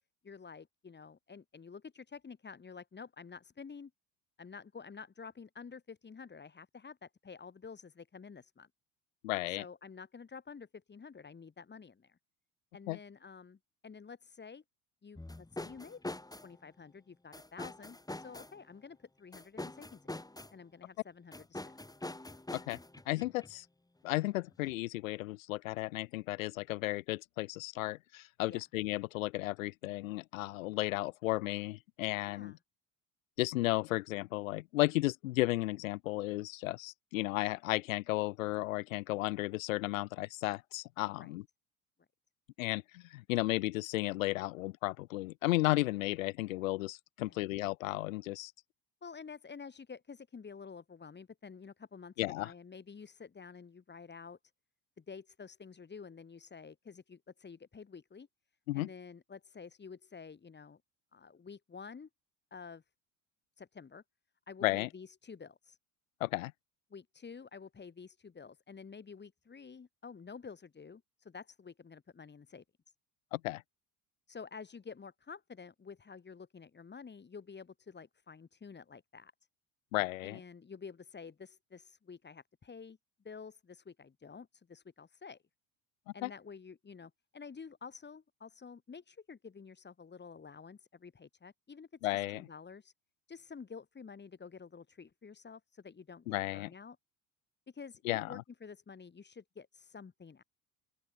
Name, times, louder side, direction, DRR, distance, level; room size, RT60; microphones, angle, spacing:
voice 1, 0.2-3.9 4.4-8.7 9.5-12.2 12.7-14.6 15.0-16.0 16.4-20.2 20.5-21.7 28.5-28.6 32.3-32.6 41.2-41.3 47.2-47.5 49.0-54.4 55.0-58.3 58.7-60.8 61.1-62.1 62.5-62.8 63.6-64.0 64.5-65.8 66.9-72.6 74.3-79.3 80.2-83.0 83.2-85.4 86.1-92.9 93.3-96.3 96.5-97.0 97.7-100.4, left 5 dB, 25° left, 4.2 m, -50 dB
voice 2, 9.2-9.6 12.9-13.0 22.5-22.8 23.1-23.6 24.0-32.6 33.4-41.4 42.6-48.5 52.2-52.5 58.7-58.9 64.6-64.9 66.2-66.5 73.3-73.6 79.9-80.4 86.2-86.3 92.0-92.4 96.3-96.7 98.0-98.4, left 19 dB, 80° left, 1.3 m, -34 dB
sound 1, 15.2-16.5 17.3-18.6 19.3-20.5 21.3-23.5 24.6-24.7, left 2 dB, 10° left, 6.7 m, -44 dB
open air
hypercardioid pair, 75°, 40 cm